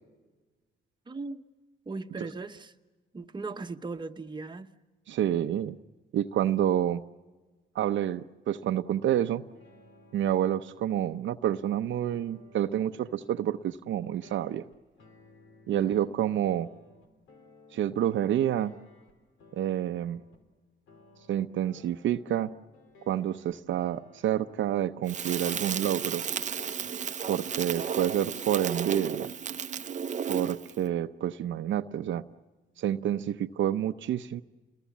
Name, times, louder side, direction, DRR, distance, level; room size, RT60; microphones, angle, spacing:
voice 1, 1.1-1.4 1.8-2.7 3.1-4.7 15.7-16.1 27.7-28.3, right 3 dB, 20° right, 1.1 m, -39 dB
voice 2, 5.1-5.7 6.1-7.0 7.7-9.4 10.1-14.6 15.7-16.7 17.7-18.7 19.5-20.2 21.3-22.5 23.1-26.2 27.3-29.3 30.3-32.2 32.8-34.4, right 11 dB, 70° right, 0.8 m, -28 dB
sound 1, 9.5-11.6 12.1-16.0 16.5-20.4 20.9-24.7 25.2-26.9, left 2 dB, 80° left, 3.6 m, -58 dB
Crackle, 25.1-30.8, right 7 dB, 35° right, 0.7 m, -33 dB
29.5 x 21.5 x 7.3 m
cardioid pair, 90°, 20 cm